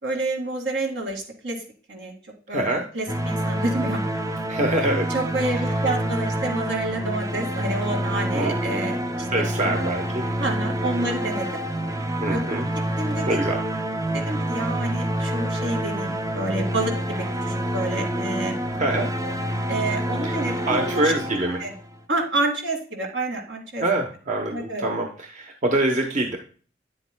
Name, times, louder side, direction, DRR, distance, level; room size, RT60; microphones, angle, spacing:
voice 1, 0.0-1.6 1.9-2.1 2.5-2.6 2.9-4.0 5.1-9.3 9.6-9.7 10.4-11.6 12.3-12.4 13.0-13.4 14.1-18.6 19.7-21.0 21.6-21.7 22.1-23.8 24.5-24.8, right 2 dB, 75° right, 1 dB, 2.1 m, -28 dB
voice 2, 2.5-2.8 4.5-5.1 5.4-5.7 8.3-8.6 9.3-10.3 12.2-12.7 13.3-13.6 18.7-19.1 20.2-20.3 20.7-21.6 23.8-26.4, right 2 dB, 40° right, 2 dB, 1.0 m, -25 dB
sound 1, 3.1-22.0, right 1 dB, 20° right, 0.6 m, -27 dB
9.4 x 7.7 x 2.2 m, 0.41 s
head